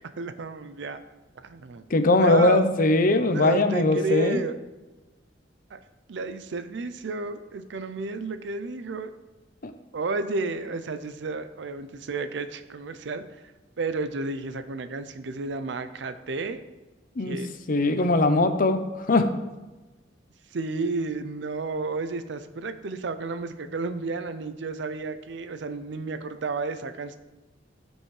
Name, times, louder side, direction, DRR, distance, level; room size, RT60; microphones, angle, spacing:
voice 1, 0.2-1.0 1.4-2.6 3.3-4.6 5.7-5.8 6.1-9.1 9.9-13.5 13.8-16.6 17.2-17.5 20.5-27.2, right 3 dB, 70° right, 10 dB, 0.5 m, -31 dB
voice 2, 1.9-4.4 9.6-9.7 17.2-17.4 17.7-19.3, left 2 dB, 50° left, 8 dB, 0.6 m, -21 dB
13.0 x 5.3 x 3.2 m, 1.1 s
head